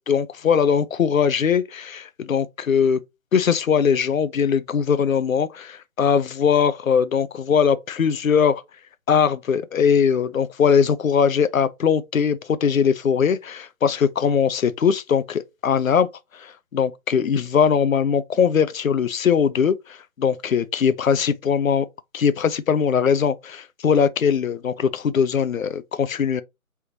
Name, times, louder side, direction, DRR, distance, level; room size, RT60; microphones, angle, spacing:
voice 1, 0.1-3.0 3.3-8.6 9.1-21.9 22.1-26.4, left 7 dB, 70° left, 0.5 m, -21 dB
4.4 x 3.5 x 2.7 m
figure-of-eight pair, 155°, 43 cm